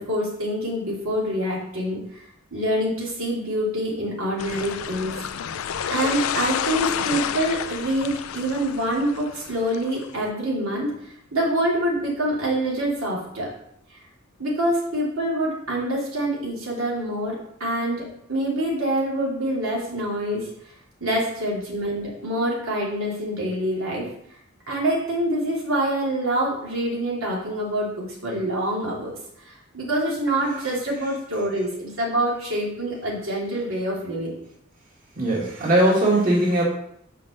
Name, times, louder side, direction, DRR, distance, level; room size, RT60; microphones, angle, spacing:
voice 1, 0.0-2.2 2.5-5.3 5.8-13.5 14.4-18.0 18.3-20.5 21.0-24.1 24.7-29.1 29.4-34.3, right 1 dB, 90° right, -4 dB, 2.8 m, -26 dB
sound 1, 4.4-10.1, left 8 dB, 85° left, 0.4 m, -30 dB
voice 2, 35.1-36.6, right 1 dB, 45° right, -4 dB, 2.0 m, -19 dB
5.8 x 5.1 x 6.4 m, 0.72 s
head